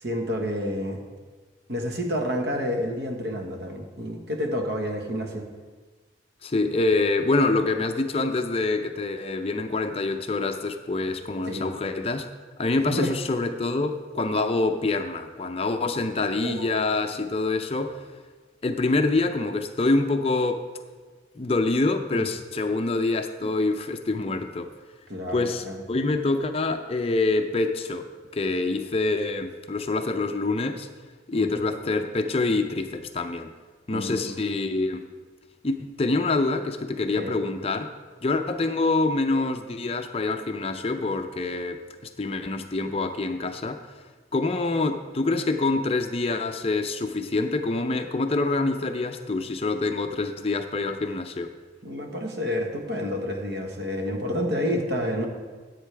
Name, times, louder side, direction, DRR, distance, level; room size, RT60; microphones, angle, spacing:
voice 1, 0.0-1.0 1.7-5.4 11.5-11.7 12.8-13.1 16.4-16.7 22.1-22.2 23.4-23.5 25.1-25.8 31.3-31.6 33.9-34.3 37.2-37.4 51.8-55.3, equal, 60° right, 2 dB, 1.4 m, -29 dB
voice 2, 6.4-12.3 12.6-18.1 18.6-20.6 21.4-24.7 25.3-30.9 31.3-33.5 33.9-35.1 35.6-37.9 38.2-43.9 44.3-51.5, left 3 dB, 30° left, 7 dB, 0.5 m, -26 dB
15.0 x 8.4 x 3.4 m, 1.4 s
head